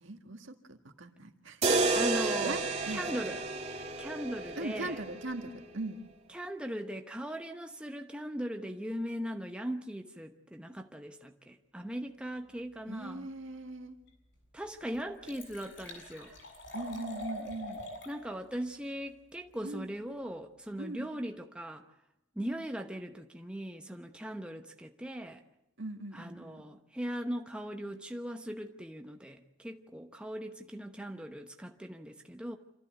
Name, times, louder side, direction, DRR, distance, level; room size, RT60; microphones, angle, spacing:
voice 1, 0.0-1.8 2.4-3.3 4.6-6.0 12.9-14.0 16.7-17.8 19.6-19.9 20.8-21.1 25.8-26.6, right 2 dB, 70° right, 1.8 m, -40 dB
sound 1, 1.6-5.7, right 3 dB, 30° right, 2.1 m, -31 dB
voice 2, 1.9-2.6 2.9-3.4 4.0-5.0 6.3-13.3 14.5-16.3 18.1-21.8 22.4-25.4 26.1-32.6, equal, 5° right, 0.9 m, -39 dB
Liquid, 14.1-14.2 14.6-14.7 14.9-18.2 18.5-18.6, left 1 dB, 60° left, 7.5 m, -44 dB
27.0 x 14.5 x 8.0 m
head